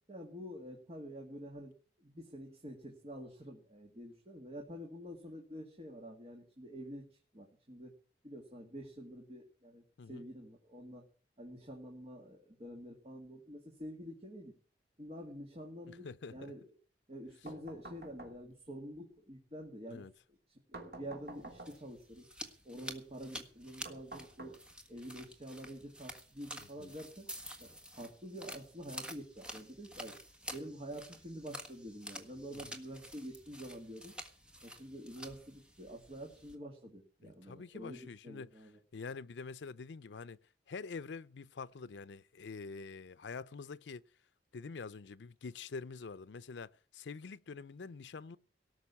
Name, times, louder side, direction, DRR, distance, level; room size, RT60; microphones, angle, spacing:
voice 1, 0.1-1.7 2.0-7.9 8.2-9.8 10.1-11.0 11.4-14.5 15.0-16.6 17.1-20.1 20.8-22.2 22.6-24.5 24.9-27.3 27.6-30.2 30.5-34.1 34.6-38.8, equal, 35° right, 2.3 m, -47 dB
voice 2, 15.9-16.5 19.9-20.1 26.6-26.9 32.5-32.8 37.2-38.5 38.9-40.4 40.7-44.0 44.5-48.4, left 4 dB, 80° left, 0.5 m, -46 dB
sound 1, 17.5-18.7 20.7-22.0 23.8-25.0, right 2 dB, 60° right, 2.8 m, -50 dB
sound 2, 21.3-36.6, equal, 5° right, 1.5 m, -50 dB
18.0 x 6.1 x 8.4 m
head